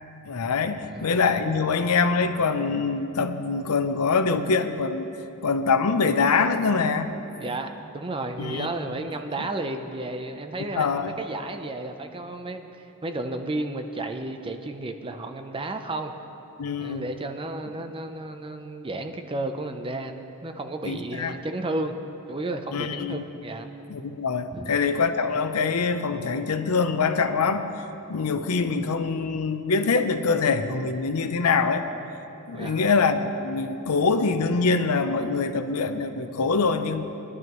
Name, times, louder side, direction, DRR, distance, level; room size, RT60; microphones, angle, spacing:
voice 1, 0.3-5.1 5.4-7.1 8.4-8.9 9.4-9.5 10.8-11.2 16.6-17.1 20.8-21.3 22.7-23.2 23.9-27.7 28.1-31.9 32.5-37.0, left 4 dB, 90° left, 9 dB, 0.6 m, -24 dB
voice 2, 7.4-16.1 16.8-21.9 22.3-23.7 24.5-24.7 32.5-32.8, right 2 dB, 25° right, 6 dB, 0.6 m, -32 dB
20.5 x 11.0 x 3.1 m, 2.9 s
head